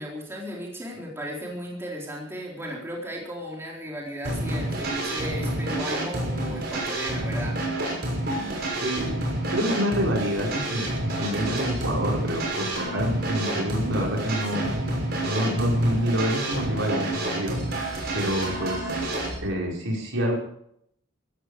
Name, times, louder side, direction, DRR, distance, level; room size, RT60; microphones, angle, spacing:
voice 1, 0.0-7.6, equal, 10° right, -3 dB, 4.0 m, -35 dB
sound 1, 4.2-19.4, right 1 dB, 50° right, 6.2 m, -29 dB
voice 2, 8.8-14.9 15.2-17.6 18.1-19.1 19.4-20.4, equal, 75° right, -1 dB, 5.4 m, -27 dB
16.0 x 15.0 x 5.0 m, 0.70 s
head